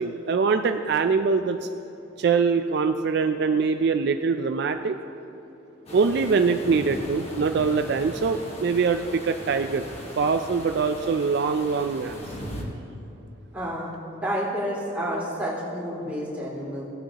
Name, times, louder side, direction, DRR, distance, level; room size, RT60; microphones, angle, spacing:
voice 1, 0.0-1.6 2.2-5.0 5.9-9.8 10.2-12.2, right 5 dB, 55° right, 7 dB, 0.3 m, -23 dB
sound 1, 5.9-12.6, left 1 dB, 30° left, 1.4 m, -38 dB
voice 2, 13.5-13.9 14.2-16.8, equal, 10° right, -7 dB, 2.6 m, -29 dB
16.5 x 8.3 x 2.9 m, 3.0 s
head